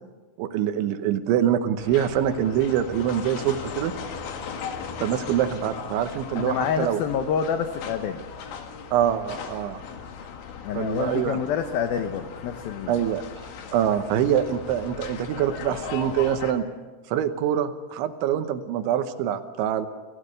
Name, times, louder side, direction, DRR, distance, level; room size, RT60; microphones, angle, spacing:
voice 1, 0.4-3.9 5.0-7.0 8.9-9.8 10.7-11.4 12.9-13.2 13.7-16.7 17.1-19.9, right 10 dB, 80° right, 9 dB, 3.3 m, -24 dB
sound 1, 1.8-16.5, left 6 dB, 70° left, 4.0 m, -38 dB
voice 2, 6.4-8.2 10.6-13.0, left 7 dB, 85° left, 8 dB, 2.1 m, -27 dB
27.0 x 16.0 x 6.7 m, 1.3 s
omnidirectional pair, 5.5 m